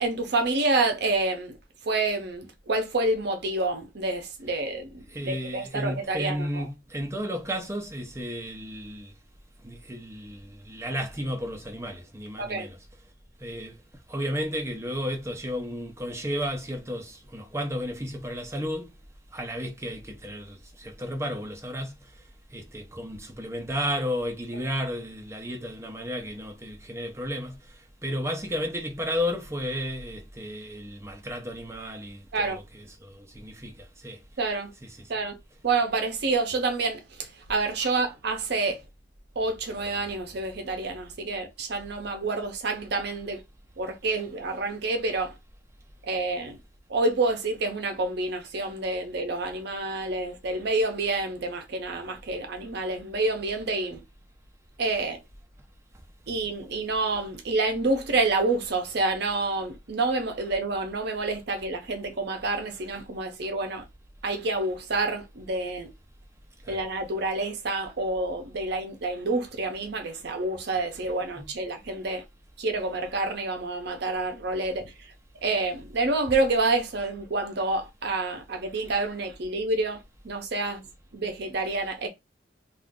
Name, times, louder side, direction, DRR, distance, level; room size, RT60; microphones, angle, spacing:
voice 1, 0.0-1.6 1.8-6.7 12.4-12.7 32.3-32.6 34.4-34.7 35.1-35.4 35.6-38.8 39.4-43.4 43.8-45.3 46.1-46.6 46.9-54.0 54.8-55.2 56.3-63.8 64.2-65.9 66.7-72.2 72.6-74.9 75.4-80.8 81.1-82.1, right 2 dB, 65° right, 0.7 m, -28 dB
voice 2, 5.1-9.1 9.6-12.8 13.4-13.8 14.1-18.9 19.3-22.2 22.5-34.2 34.8-35.1 37.8-37.9 66.6-66.8 71.4-71.5, equal, 15° right, 0.6 m, -33 dB
2.5 x 2.4 x 3.5 m
head